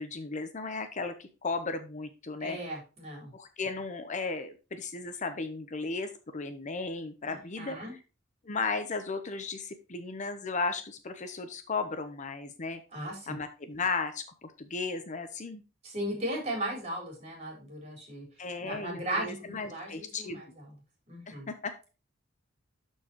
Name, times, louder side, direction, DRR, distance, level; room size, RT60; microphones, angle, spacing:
voice 1, 0.0-2.6 3.3-7.8 8.4-12.8 13.3-15.6 18.4-20.4 21.3-21.9, left 4 dB, 40° left, 9 dB, 0.7 m, -35 dB
voice 2, 2.4-3.3 7.2-7.9 12.9-13.4 15.8-18.3 18.6-20.7 21.1-21.5, right 1 dB, 35° right, 0 dB, 4.0 m, -37 dB
12.0 x 4.6 x 2.9 m, 0.32 s
head